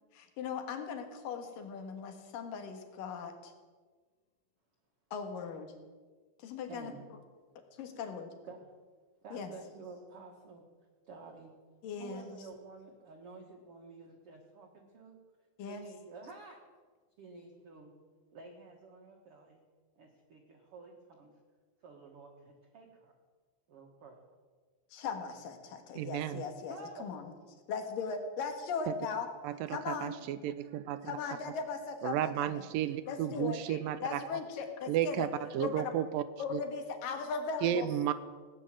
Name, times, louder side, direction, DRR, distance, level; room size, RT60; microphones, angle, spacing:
voice 1, 0.1-3.5 5.1-5.7 6.4-6.9 7.8-8.3 9.3-9.5 11.8-12.4 15.6-15.8 24.9-27.2 27.7-29.3 29.7-30.1 31.1-32.6 33.1-35.3 35.6-35.9 36.4-38.1, left 5 dB, 70° left, 6 dB, 3.2 m, -38 dB
voice 2, 6.7-7.1 8.4-8.7 9.2-10.6 11.1-11.5 12.0-15.2 15.7-16.6 17.2-17.9 18.3-19.6 20.0-21.3 21.8-23.1 23.7-24.2 26.7-27.2, right 3 dB, 50° right, 1 dB, 2.0 m, -51 dB
voice 3, 26.0-26.4 28.9-29.0 29.4-31.1 32.0-34.4 34.9-35.3 35.5-36.2 36.5-36.6 37.6-38.1, right 11 dB, 80° right, 14 dB, 2.2 m, -33 dB
17.5 x 9.8 x 7.6 m, 1.4 s
omnidirectional pair, 4.2 m